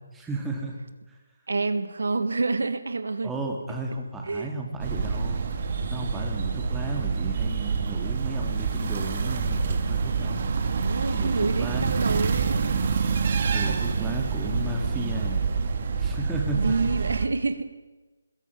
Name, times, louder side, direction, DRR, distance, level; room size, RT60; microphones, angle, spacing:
voice 1, 0.1-0.8 3.2-5.4 5.9-10.5 11.1-12.0 13.4-15.4 16.0-16.8, right 2 dB, 5° right, 0 dB, 3.4 m, -34 dB
voice 2, 1.5-3.3 3.9-4.0 4.3-4.5 6.1-6.3 10.7-12.8 16.5-17.8, right 3 dB, 65° right, 11 dB, 1.6 m, -28 dB
sound 1, 4.8-17.3, right 5 dB, 45° right, 2.6 m, -27 dB
21.0 x 16.0 x 9.0 m, 1.2 s
figure-of-eight pair, 150°, 0 cm